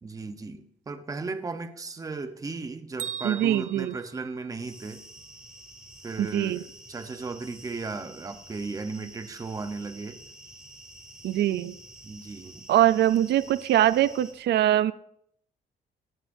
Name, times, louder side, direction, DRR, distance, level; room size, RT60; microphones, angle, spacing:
voice 1, 0.0-5.0 6.0-10.2 12.0-12.6, right 3 dB, 20° right, 8 dB, 1.0 m, -36 dB
Bell, 3.0-5.0, right 7 dB, 45° right, 0.9 m, -40 dB
voice 2, 3.2-3.9 6.2-6.6 11.2-11.8 12.7-14.9, right 12 dB, 80° right, 14 dB, 0.5 m, -23 dB
sound 1, 4.6-14.3, right 1 dB, 5° right, 2.7 m, -49 dB
24.0 x 11.5 x 2.7 m, 0.71 s
cardioid pair, 170°, 17 cm